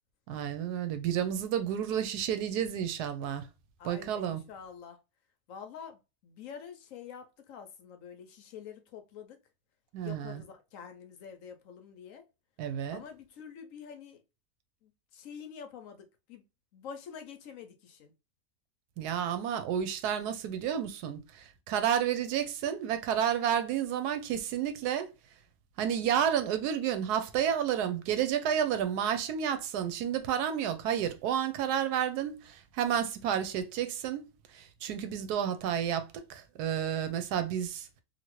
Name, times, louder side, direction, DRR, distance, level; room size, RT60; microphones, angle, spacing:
voice 1, 0.3-3.4 3.8-4.4 9.9-10.4 12.6-13.0 19.0-25.1 25.8-34.2 34.5-37.9, right 9 dB, 90° right, 1.2 m, -31 dB
voice 2, 3.8-5.0 5.5-9.4 10.0-12.2 12.9-14.2 14.8-16.4 16.7-18.1, left 7 dB, 65° left, 0.9 m, -47 dB
2.9 x 2.6 x 2.9 m
omnidirectional pair, 1.6 m